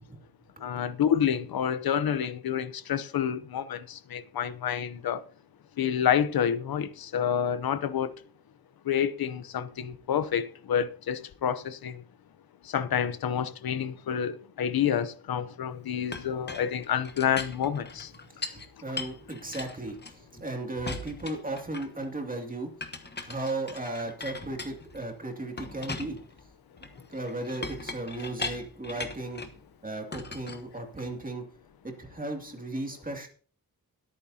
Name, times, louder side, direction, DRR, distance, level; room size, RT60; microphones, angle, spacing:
voice 1, 0.6-5.2 5.8-8.2 8.8-12.0 12.6-18.1, left 8 dB, 90° left, 0.8 m, -28 dB
Chink clink, 16.1-18.7 19.0-20.5 20.9-22.1 22.8-25.1 25.6-29.6 30.1-31.3, left 3 dB, 30° left, 1.2 m, -39 dB
voice 2, 18.4-22.7 23.2-26.2 27.1-29.4 29.8-31.4 31.8-33.3, right 2 dB, 25° right, 2.4 m, -36 dB
21.5 x 9.0 x 2.8 m
wide cardioid pair, 120°, 35 cm